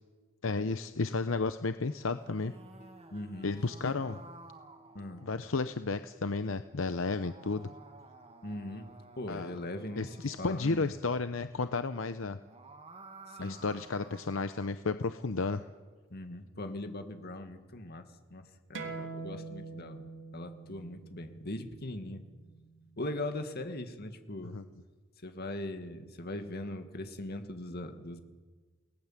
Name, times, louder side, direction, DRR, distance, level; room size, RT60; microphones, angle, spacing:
voice 1, 0.4-2.5 3.4-4.2 5.2-7.7 9.3-9.6 10.0-12.4 13.4-15.6 24.5-24.6, left 3 dB, 75° left, 10 dB, 0.8 m, -32 dB
sound 1, 1.7-5.6 6.6-10.8 12.2-14.7, right 3 dB, 30° right, 2.3 m, -54 dB
sound 2, 2.8-14.9, equal, 35° left, 4.1 m, -65 dB
voice 2, 3.1-3.5 3.8-4.0 4.9-5.3 8.4-8.9 9.2-10.9 13.3-13.6 16.1-18.1 18.3-22.3 23.0-24.6 25.2-28.2, left 1 dB, 50° left, 7 dB, 2.1 m, -40 dB
sound 3, 18.7-23.9, right 4 dB, 65° right, 2.7 m, -45 dB
29.0 x 19.0 x 7.5 m, 1.4 s
head